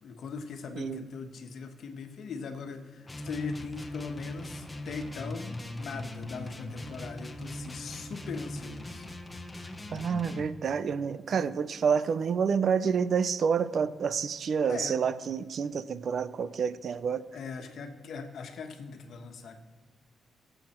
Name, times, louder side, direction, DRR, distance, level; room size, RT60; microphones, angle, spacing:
voice 1, 0.0-9.0 14.7-15.0 17.3-19.6, left 5 dB, 65° left, 5 dB, 1.4 m, -40 dB
sound 1, 3.0-10.5, left 1 dB, 15° left, 1.0 m, -40 dB
voice 2, 9.9-17.2, right 6 dB, 55° right, 15 dB, 0.5 m, -28 dB
23.0 x 7.9 x 4.5 m, 1.5 s
cardioid pair, 120°, 0 cm